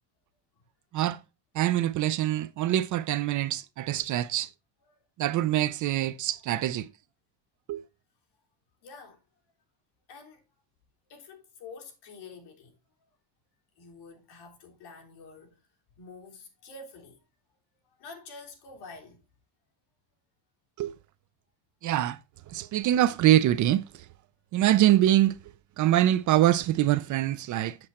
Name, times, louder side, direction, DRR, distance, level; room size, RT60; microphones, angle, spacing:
voice 1, 1.5-4.5 5.2-6.9 7.7-7.8 20.8-21.0 21.8-22.2 22.5-24.1 24.5-25.4 25.8-27.8, right 13 dB, 45° right, 0.5 m, -24 dB
voice 2, 8.8-9.2 10.1-10.4 11.1-12.8 13.8-15.6 16.0-17.2 18.0-19.2, left 4 dB, 55° left, 3.2 m, -47 dB
7.8 x 7.5 x 4.2 m
cardioid pair, 170°, 45 cm